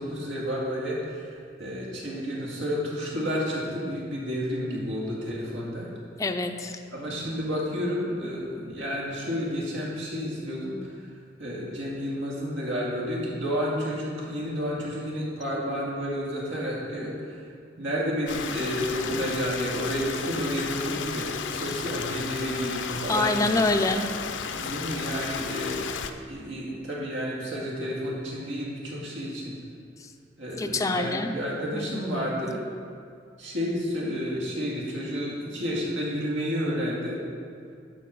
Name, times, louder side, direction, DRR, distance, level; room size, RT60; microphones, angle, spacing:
voice 1, 0.0-5.9 6.9-11.1 11.4-17.5 17.8-23.5 24.5-25.9 26.3-29.6 30.4-32.6 33.4-37.2, equal, 85° right, -4 dB, 2.4 m, -31 dB
voice 2, 6.2-6.8 23.1-24.1 30.0-30.1 30.6-31.3 31.7-32.0, left 2 dB, 20° left, 5 dB, 0.4 m, -26 dB
Stream, 18.3-26.1, left 6 dB, 75° left, 0.5 m, -33 dB
11.0 x 4.5 x 6.5 m, 2.4 s
head